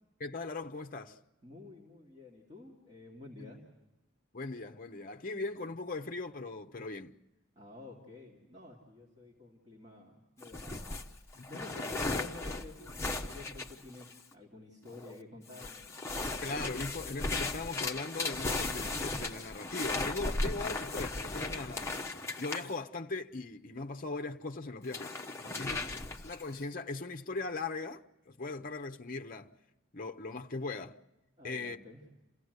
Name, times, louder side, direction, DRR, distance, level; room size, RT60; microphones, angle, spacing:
voice 1, 0.2-1.2 3.4-3.5 4.3-7.1 11.3-11.6 16.4-22.0 22.4-25.2 25.6-25.8 26.2-29.5 29.9-31.0 31.4-31.8, left 3 dB, 40° left, 0.7 m, -39 dB
voice 2, 1.4-3.6 7.6-10.9 11.5-16.1 25.4-25.9 31.4-32.1, left 2 dB, 30° right, 2.7 m, -51 dB
sound 1, 10.4-14.3 14.9-15.2 15.5-22.7 24.8-26.5, left 2 dB, 15° left, 1.0 m, -36 dB
28.5 x 16.5 x 8.1 m
head